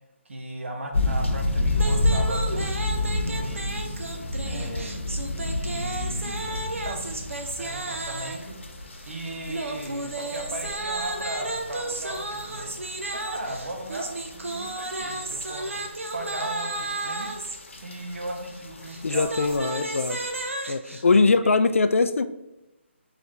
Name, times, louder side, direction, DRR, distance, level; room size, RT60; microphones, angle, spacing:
voice 1, 0.2-4.0 4.4-5.0 5.5-8.6 9.1-12.7 13.2-14.1 14.3-15.8 16.1-17.3 17.8-19.8 21.0-21.5, right 1 dB, 70° right, 2 dB, 1.1 m, -37 dB
sound 1, 0.9-20.5, left 2 dB, 70° left, 0.9 m, -31 dB
sound 2, 1.7-8.5 9.5-17.6 18.8-21.0, right 2 dB, 90° right, 0.7 m, -33 dB
voice 2, 19.0-20.2 20.7-22.2, left 3 dB, 90° left, 11 dB, 0.4 m, -21 dB
4.1 x 3.4 x 3.7 m, 0.95 s
hypercardioid pair, 170°, 7 cm